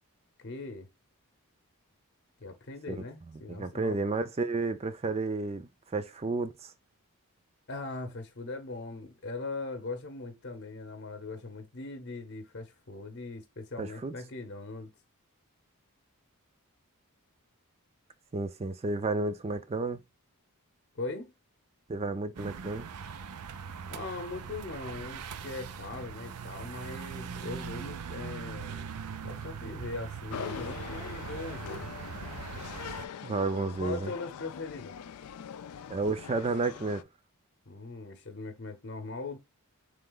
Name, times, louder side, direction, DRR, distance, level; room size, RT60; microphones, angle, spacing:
voice 1, 0.4-0.9 2.4-4.0 7.7-14.9 20.9-21.3 23.9-28.9 29.2-31.9 33.8-34.9 37.7-39.4, left 3 dB, 50° left, 0.8 m, -40 dB
voice 2, 3.5-6.7 13.8-14.1 18.3-20.0 21.9-22.9 33.2-34.1 35.9-37.0, right 3 dB, 30° right, 0.4 m, -31 dB
sound 1, 22.4-33.1, right 6 dB, 85° right, 0.5 m, -41 dB
sound 2, 30.3-37.0, left 8 dB, 85° left, 0.4 m, -43 dB
3.8 x 3.3 x 3.8 m
head